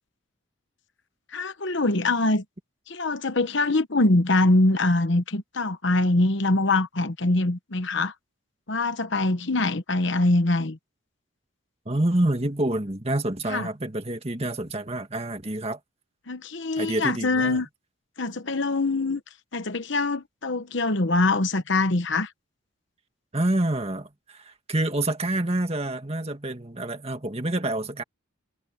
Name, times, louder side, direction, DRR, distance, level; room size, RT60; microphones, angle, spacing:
voice 1, 1.3-2.4 2.9-8.1 8.7-10.8 13.5-13.7 16.3-17.7 18.2-19.2 19.5-22.3, left 2 dB, 60° left, 1.1 m, -23 dB
voice 2, 11.9-15.8 16.8-17.6 23.3-28.0, right 1 dB, 30° right, 1.9 m, -27 dB
head